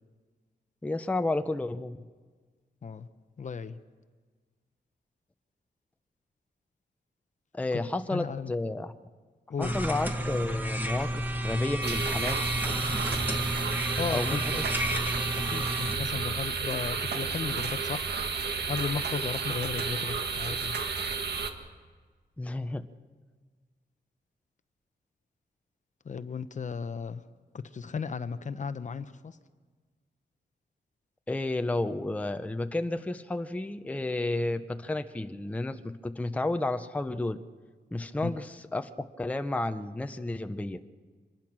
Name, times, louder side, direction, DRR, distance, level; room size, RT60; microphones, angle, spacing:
voice 1, 0.8-2.0 7.5-8.9 9.6-12.4 14.1-14.6 22.4-22.8 31.3-37.4 37.9-40.8, left 2 dB, 10° left, 8 dB, 0.6 m, -31 dB
voice 2, 3.4-3.8 7.7-7.8 8.1-8.5 9.5-9.7 13.9-14.7 15.3-18.1 18.7-20.8 26.0-27.2 27.5-29.4 38.2-38.4, left 5 dB, 45° left, 12 dB, 0.7 m, -35 dB
sound 1, 9.6-16.0, equal, 10° right, 1.6 m, -31 dB
sound 2, 11.8-21.5, right 5 dB, 70° right, 1.6 m, -32 dB
25.5 x 21.0 x 6.1 m, 1.5 s
wide cardioid pair, 155°, 18 cm